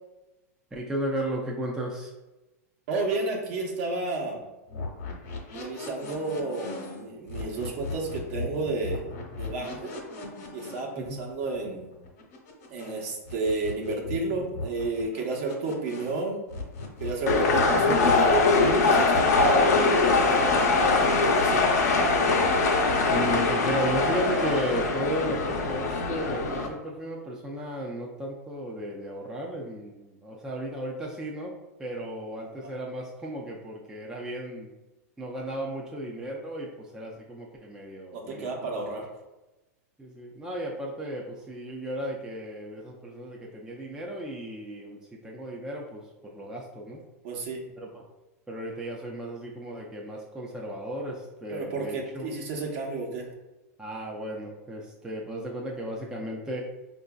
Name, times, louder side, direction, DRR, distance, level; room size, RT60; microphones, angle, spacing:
voice 1, 0.7-2.1 11.0-11.2 23.1-31.5 31.8-34.7 35.2-39.0 40.0-47.0 47.8-48.0 48.5-52.3 53.8-56.6, right 1 dB, 5° right, -2 dB, 0.5 m, -35 dB
voice 2, 2.9-4.4 5.5-9.0 9.4-9.9 10.5-11.9 12.7-16.4 17.0-21.6 32.6-32.7 38.1-39.1 47.2-47.6 51.5-53.3, right 3 dB, 60° right, -1 dB, 1.0 m, -32 dB
sound 1, 4.7-13.0 13.3-16.2 16.5-20.0, left 3 dB, 60° left, 1.0 m, -38 dB
sound 2, 17.3-26.7, left 3 dB, 80° left, 0.7 m, -22 dB
4.8 x 2.6 x 2.3 m, 1.1 s
hypercardioid pair, 120°, 9 cm